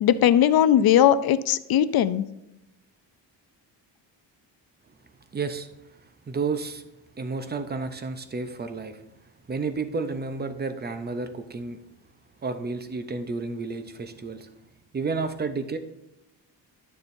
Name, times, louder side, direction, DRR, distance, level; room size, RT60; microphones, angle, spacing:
voice 1, 0.0-2.2, left 10 dB, 55° left, 15 dB, 0.5 m, -19 dB
voice 2, 5.3-5.7 6.0-6.8 7.2-9.0 9.5-11.8 12.4-14.5 14.9-15.8, right 4 dB, 20° right, 9 dB, 0.6 m, -31 dB
11.5 x 6.8 x 2.6 m, 0.91 s
cardioid pair, 120°, 44 cm